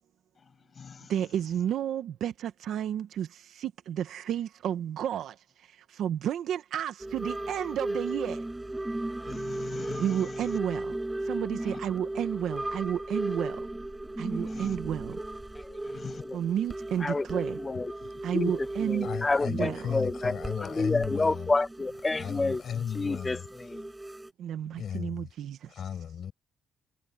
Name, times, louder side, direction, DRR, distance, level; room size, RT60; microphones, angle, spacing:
voice 1, 0.4-1.1 9.2-10.6 11.6-11.8 14.3-14.8 15.8-16.2, left 6 dB, 40° left, 7.8 m, -43 dB
voice 2, 1.1-8.4 10.0-11.0 11.2-13.7 14.2-15.2 16.3-17.6 18.2-19.1 19.5-20.0 24.4-25.7, right 10 dB, 75° right, 1.2 m, -32 dB
sound 1, 7.0-24.3, right 1 dB, 10° right, 7.2 m, -36 dB
voice 3, 17.0-17.9 18.3-18.5 18.8-20.3 20.6-22.6 22.9-23.9, left 3 dB, 20° left, 1.3 m, -29 dB
voice 4, 17.7-18.1 19.0-21.5 22.1-23.5 24.6-25.3 25.7-26.3, left 8 dB, 60° left, 7.2 m, -35 dB
cardioid pair, 90°, 0 cm